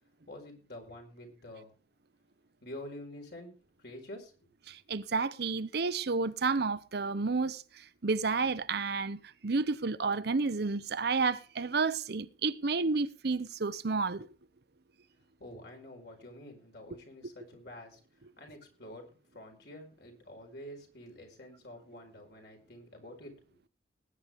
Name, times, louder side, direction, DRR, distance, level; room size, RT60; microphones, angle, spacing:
voice 1, 0.3-1.7 2.6-3.5 3.8-4.3 15.4-18.0 18.4-23.3, left 1 dB, 60° left, 4.6 m, -48 dB
voice 2, 4.7-7.6 8.0-14.3, right 4 dB, 60° right, 0.7 m, -31 dB
19.5 x 9.7 x 3.5 m
head